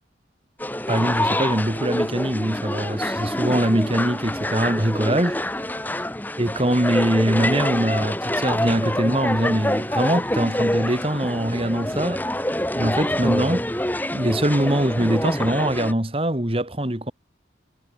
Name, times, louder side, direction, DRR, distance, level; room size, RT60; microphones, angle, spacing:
sound 1, 0.6-15.9, left 1 dB, 10° left, 4.2 m, -26 dB
voice 1, 0.9-5.4 6.4-12.2 12.7-13.8 14.1-17.1, right 1 dB, 30° right, 1.9 m, -23 dB
head